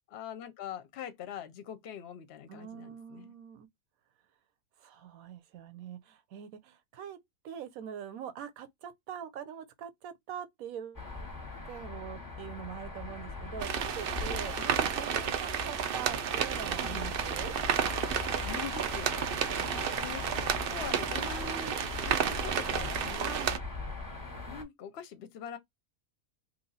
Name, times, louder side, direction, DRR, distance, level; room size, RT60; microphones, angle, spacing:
voice 1, 0.1-3.3 14.5-14.7 16.8-17.1 18.4-19.2 19.5-20.2 20.7-23.4 24.5-25.6, left 8 dB, 60° left, 0.8 m, -43 dB
voice 2, 2.5-3.7 4.8-7.2 7.4-11.0 11.6-17.5 23.1-23.6, right 9 dB, 85° right, 1.2 m, -43 dB
sound 1, 10.9-24.6, left 3 dB, 20° left, 0.8 m, -40 dB
sound 2, 13.6-23.6, right 8 dB, 70° right, 0.5 m, -32 dB
3.1 x 2.6 x 3.9 m
omnidirectional pair, 1.4 m